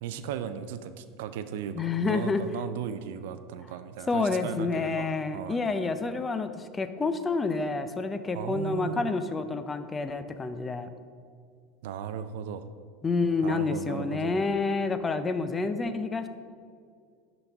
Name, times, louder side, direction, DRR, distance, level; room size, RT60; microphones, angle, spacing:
voice 1, 0.0-5.1 5.3-5.6 8.3-9.1 11.8-12.7 13.4-14.3, right 8 dB, 75° right, 11 dB, 0.4 m, -36 dB
voice 2, 1.7-2.4 4.1-10.9 13.0-16.3, left 4 dB, 20° left, 10 dB, 0.5 m, -28 dB
11.0 x 4.0 x 3.5 m, 2.2 s
hypercardioid pair, 95°, 0 cm